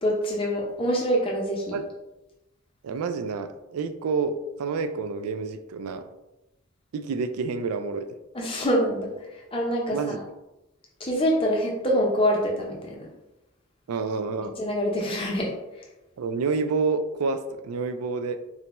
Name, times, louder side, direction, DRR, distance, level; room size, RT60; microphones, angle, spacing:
voice 1, 0.0-1.8 8.3-9.1 9.5-10.2 11.0-13.1 14.6-15.5, equal, 25° left, -2 dB, 0.6 m, -25 dB
voice 2, 2.8-6.1 6.9-8.1 9.9-10.2 13.9-14.5 16.2-18.4, right 4 dB, 85° right, 9 dB, 0.3 m, -28 dB
4.0 x 2.2 x 2.9 m, 0.95 s
head